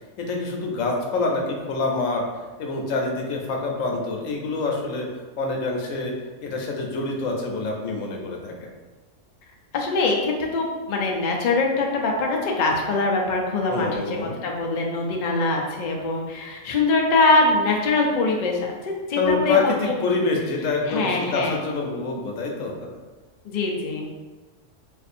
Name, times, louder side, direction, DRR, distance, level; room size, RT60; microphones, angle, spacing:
voice 1, 0.2-2.2 2.6-5.1 5.4-6.1 6.4-8.7 13.7-14.4 19.1-22.7, left 3 dB, 90° left, 0 dB, 1.0 m, -26 dB
voice 2, 9.7-19.9 20.9-21.6 23.5-24.1, left 3 dB, 55° left, 0 dB, 0.5 m, -23 dB
2.6 x 2.5 x 4.1 m, 1.3 s
omnidirectional pair, 1.3 m